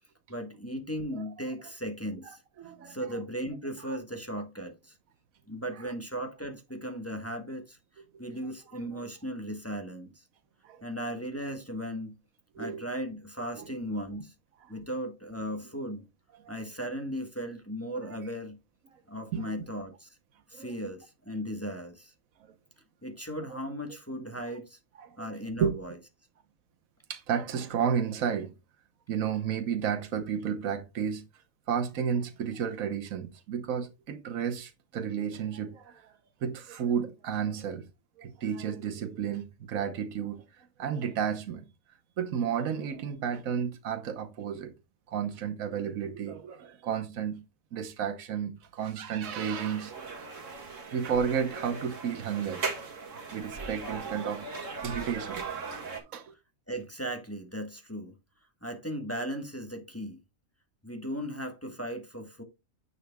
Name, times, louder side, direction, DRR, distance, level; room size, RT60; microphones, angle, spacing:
voice 1, 0.3-4.9 5.5-7.8 8.2-10.2 10.8-12.2 12.6-14.3 14.7-16.0 16.5-18.6 19.1-20.2 20.5-22.1 23.0-24.8 25.2-25.9 56.7-58.1 58.6-60.2 60.8-62.4, equal, 10° left, 1.2 m, -37 dB
voice 2, 2.6-3.0 3.9-4.0 5.8-5.9 8.9-9.1 10.6-10.8 12.5-12.8 13.6-13.8 14.6-14.7 16.4-16.5 18.0-18.2 19.3-19.4 20.5-20.7 23.5-23.6 25.0-25.3 25.6-25.8 27.1-28.5 29.1-31.2 31.7-36.2 36.4-37.8 38.2-41.7 42.2-44.7 45.1-47.4 47.7-49.9 50.7-52.6 53.3-54.5 54.8-56.3, right 7 dB, 80° right, 1.3 m, -32 dB
sound 1, 49.2-56.0, right 4 dB, 65° right, 2.1 m, -39 dB
9.8 x 6.5 x 2.3 m
omnidirectional pair, 1.4 m